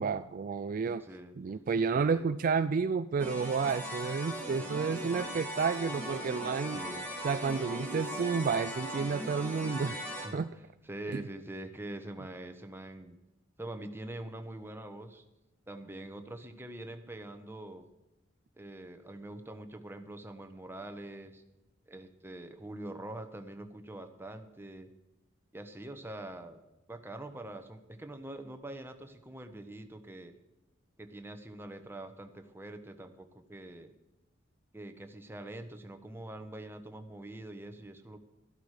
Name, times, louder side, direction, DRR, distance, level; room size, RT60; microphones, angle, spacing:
voice 1, 0.0-1.0 1.4-6.8 7.2-10.0 10.3-10.5 11.1-11.2, right 5 dB, 45° right, 12 dB, 0.4 m, -31 dB
voice 2, 0.8-1.3 1.9-2.3 6.7-7.1 10.2-10.4 10.8-13.2 13.6-15.2 15.7-17.8 18.6-21.4 21.9-24.9 25.5-26.6 26.9-30.3 31.0-33.9 34.7-38.2, right 1 dB, 10° right, 6 dB, 1.1 m, -44 dB
sound 1, 3.2-10.3, equal, 10° left, 2.7 m, -38 dB
12.5 x 12.0 x 4.9 m, 0.96 s
head